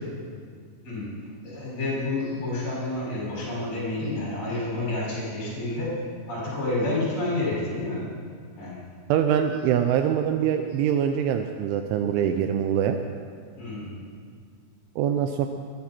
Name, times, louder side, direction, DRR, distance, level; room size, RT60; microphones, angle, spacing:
voice 1, 0.8-6.0 6.3-8.1 8.6-8.9 13.6-13.9, left 2 dB, 40° left, -6 dB, 7.2 m, -29 dB
voice 2, 9.1-13.0 15.0-15.5, right 9 dB, 80° right, 6 dB, 2.9 m, -24 dB
22.0 x 14.0 x 4.4 m, 2.1 s
omnidirectional pair, 5.8 m